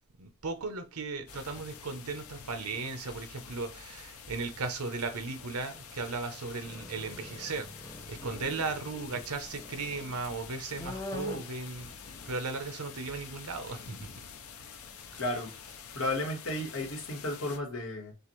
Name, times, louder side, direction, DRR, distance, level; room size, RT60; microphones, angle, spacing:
voice 1, 0.2-11.9 12.3-14.1 15.1-15.2, right 4 dB, 90° right, 0.9 m, -36 dB
sound 1, 1.3-17.6, left 6 dB, 75° left, 0.7 m, -47 dB
sound 2, 6.6-12.3, left 1 dB, 15° left, 0.6 m, -45 dB
voice 2, 15.1-15.6 15.9-18.1, left 1 dB, 60° left, 1.5 m, -33 dB
6.6 x 2.5 x 3.1 m
head